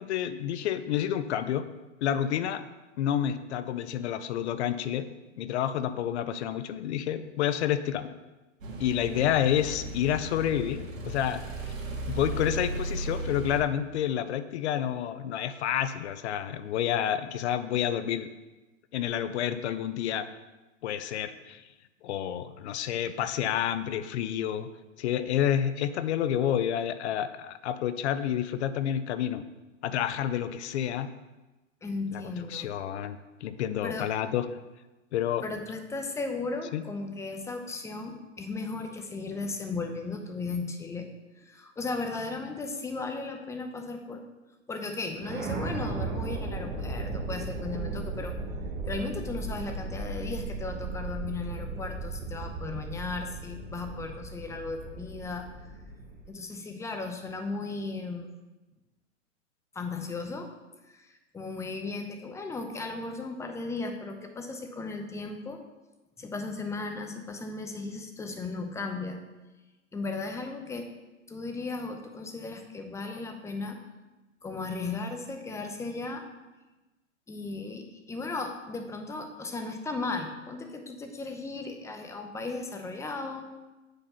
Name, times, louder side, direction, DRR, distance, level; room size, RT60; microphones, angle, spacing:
voice 1, 0.0-1.7 2.0-2.6 3.0-5.1 5.4-8.1 8.8-11.7 12.1-18.3 18.9-20.3 20.8-21.6 22.0-24.7 25.0-29.4 29.8-31.1 32.1-32.2 32.5-34.5 35.1-35.4 36.7-36.8, left 10 dB, 60° left, 12 dB, 0.7 m, -29 dB
sound 1, 8.6-13.6, right 1 dB, 80° right, 1.8 m, -36 dB
voice 2, 31.8-32.7 33.8-34.1 35.4-41.1 41.4-44.2 44.7-48.3 48.9-55.5 56.3-58.3 59.7-60.5 60.9-65.6 66.2-69.2 69.9-70.9 71.3-73.8 74.4-76.3 77.3-83.5, left 3 dB, 5° left, 5 dB, 0.6 m, -36 dB
sound 2, 45.2-56.3, right 3 dB, 25° right, 1.2 m, -36 dB
8.1 x 4.2 x 5.7 m, 1.1 s
hypercardioid pair, 125°, 39 cm